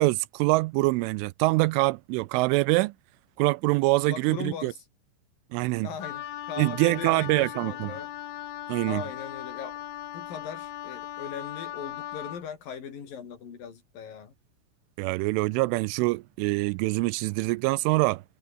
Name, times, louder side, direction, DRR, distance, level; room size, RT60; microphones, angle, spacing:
voice 1, 0.0-2.9 3.4-4.7 5.5-5.9 6.6-7.9 8.7-9.0 15.0-18.2, right 23 dB, 85° right, 3.0 m, -24 dB
voice 2, 4.1-4.8 5.8-8.1 8.9-9.8 10.1-14.3, left 7 dB, 45° left, 5.4 m, -39 dB
Wind instrument woodwind instrument, 6.0-12.5, left 12 dB, 75° left, 4.5 m, -38 dB
omnidirectional pair, 5.8 m